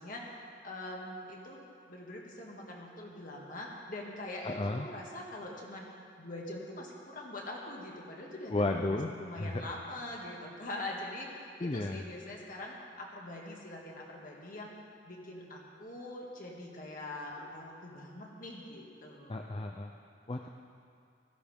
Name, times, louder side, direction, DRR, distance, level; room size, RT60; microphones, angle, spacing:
voice 1, 0.0-1.6 1.9-5.9 6.2-8.5 8.8-14.7 15.1-19.5, left 1 dB, 45° left, -2 dB, 1.9 m, -43 dB
voice 2, 4.4-4.9 8.5-9.6 11.6-12.0 19.3-19.9 20.3-20.5, left 2 dB, 30° left, 3 dB, 0.5 m, -33 dB
16.5 x 13.5 x 3.6 m, 2.4 s
head